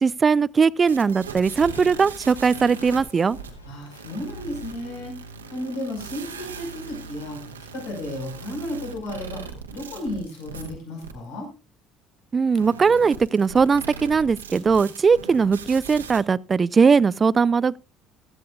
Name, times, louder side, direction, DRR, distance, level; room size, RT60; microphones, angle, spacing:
voice 1, 0.0-3.4 12.3-17.8, right 5 dB, 30° right, 0.5 m, -19 dB
sound 1, 0.8-10.7 11.0-11.1 12.5-16.2, right 5 dB, 85° right, 1.4 m, -40 dB
Crushing, 1.6-7.0, equal, 90° left, 1.7 m, -47 dB
voice 2, 3.7-5.2 5.5-9.4 9.7-11.5, left 1 dB, 65° left, 5.1 m, -33 dB
16.0 x 13.0 x 2.4 m
figure-of-eight pair, 55°, 0 cm